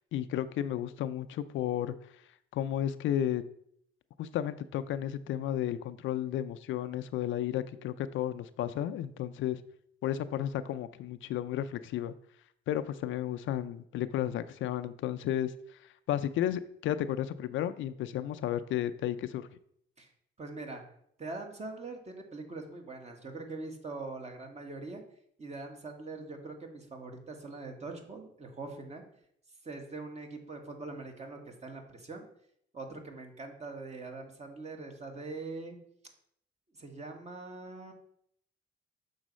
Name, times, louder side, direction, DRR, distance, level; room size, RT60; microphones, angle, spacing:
voice 1, 0.1-1.9 2.5-3.4 4.2-9.6 10.0-12.1 12.7-15.5 16.1-19.5, left 11 dB, 75° left, 12 dB, 0.5 m, -33 dB
voice 2, 20.4-20.8 21.2-25.0 25.4-29.0 29.6-32.2 32.7-35.8 36.8-37.9, right 3 dB, 35° right, 3 dB, 1.6 m, -42 dB
6.3 x 4.0 x 6.2 m, 0.69 s
cardioid pair, 90°, 20 cm